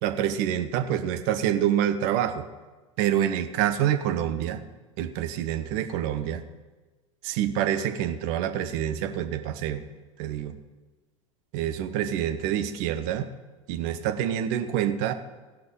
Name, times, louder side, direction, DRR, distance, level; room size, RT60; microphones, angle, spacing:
voice 1, 0.0-2.4 3.0-4.6 5.0-6.4 7.2-9.8 10.2-10.6 11.5-13.3 13.7-15.1, right 10 dB, 55° right, 9 dB, 1.0 m, -27 dB
17.0 x 5.9 x 5.4 m, 1.3 s
hypercardioid pair, 80°, 17 cm